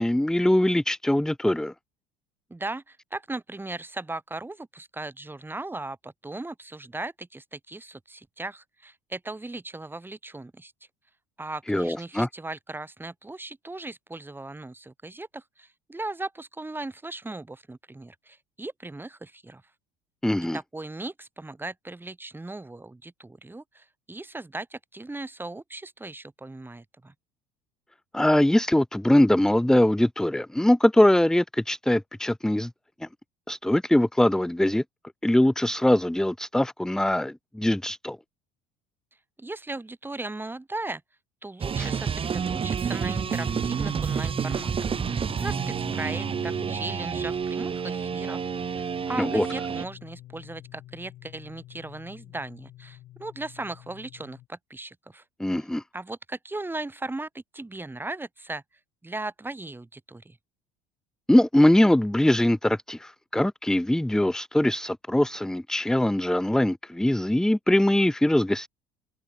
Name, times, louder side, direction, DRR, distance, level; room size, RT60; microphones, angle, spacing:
voice 1, 0.0-1.7 11.7-12.3 20.2-20.6 28.1-32.7 33.5-34.8 35.2-38.2 41.8-41.9 49.2-49.5 55.4-55.8 61.3-68.7, left 1 dB, 5° left, 0.8 m, -22 dB
voice 2, 2.5-10.7 11.4-19.6 20.5-27.1 39.4-41.0 41.4-48.4 48.7-55.2 55.9-58.6 59.0-60.4, right 2 dB, 10° right, 7.8 m, -37 dB
sound 1, 41.6-49.8, right 6 dB, 35° right, 4.0 m, -29 dB
sound 2, 43.0-54.5, left 15 dB, 60° left, 7.8 m, -46 dB
open air
hypercardioid pair, 80°, 16 cm